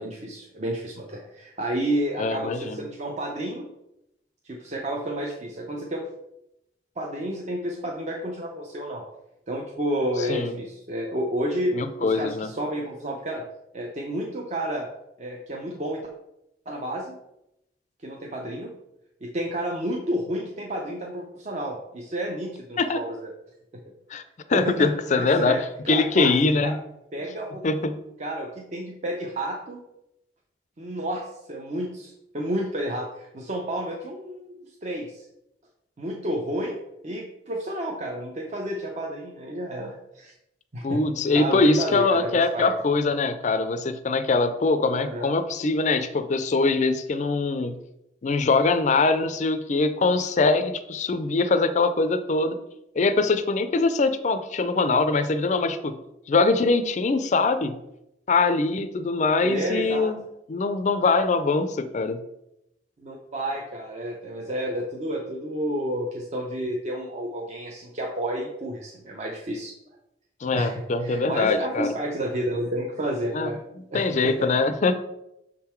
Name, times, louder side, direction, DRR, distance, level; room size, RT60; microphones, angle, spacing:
voice 1, 0.0-3.7 4.4-6.0 7.0-9.0 9.5-13.4 13.7-14.9 15.2-16.0 16.7-17.2 18.0-18.7 19.2-23.3 23.7-23.8 24.5-24.9 25.2-25.6 25.9-26.3 26.6-26.7 27.1-27.6 28.2-29.8 30.8-35.3 36.0-36.8 37.0-40.3 40.7-41.0 41.3-42.7 45.0-45.3 59.4-60.1 63.0-69.7 70.5-73.6 73.9-74.3, right 1 dB, 40° right, 0 dB, 0.6 m, -30 dB
voice 2, 2.2-2.8 10.3-10.5 11.7-12.5 22.8-23.0 24.1-24.2 24.5-25.6 25.9-26.8 27.6-28.0 40.8-47.8 48.2-52.6 53.0-55.9 56.3-57.8 58.3-60.2 60.5-62.2 70.4-71.9 73.3-73.5 73.9-75.0, left 3 dB, 40° left, 10 dB, 0.4 m, -23 dB
6.1 x 3.8 x 4.4 m, 0.85 s
head